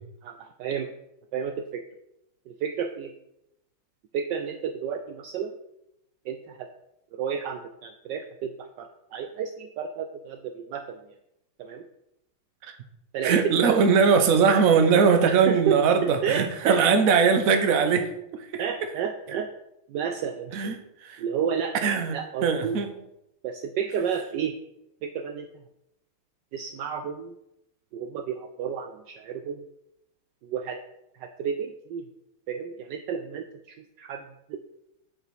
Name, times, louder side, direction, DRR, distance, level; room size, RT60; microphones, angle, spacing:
voice 1, 0.2-0.9 1.3-1.8 2.5-3.1 4.1-5.5 6.3-6.7 7.1-11.1 11.6-11.9 13.1-13.8 15.2-16.8 17.1-17.2 18.6-19.5 19.9-20.6 21.2-21.8 22.1-22.8 23.4-24.6 25.0-25.6 26.5-27.4 27.9-29.7 30.4-30.8 31.2-32.1 32.5-34.6, right 7 dB, 80° right, 7 dB, 1.0 m, -31 dB
voice 2, 13.2-18.5 20.5-20.7 21.0-21.2 21.8-22.9, right 5 dB, 55° right, 7 dB, 1.0 m, -21 dB
8.0 x 4.9 x 5.9 m, 0.85 s
omnidirectional pair, 2.4 m